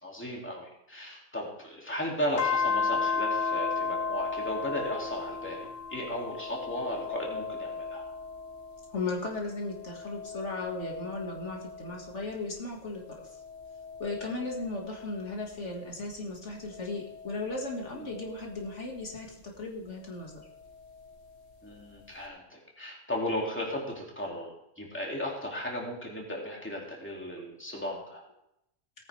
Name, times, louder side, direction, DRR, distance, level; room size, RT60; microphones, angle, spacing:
voice 1, 0.0-8.0 14.2-14.3 17.9-18.1 21.6-28.2, equal, 10° left, -2 dB, 2.6 m, -36 dB
sound 1, 2.4-9.1 9.5-12.4 13.0-15.8 16.6-19.0 20.4-21.4, left 5 dB, 85° left, 1.7 m, -36 dB
voice 2, 8.9-13.0 14.0-20.4, left 3 dB, 70° left, 0 dB, 2.3 m, -36 dB
18.0 x 9.4 x 3.4 m, 0.80 s
omnidirectional pair, 1.3 m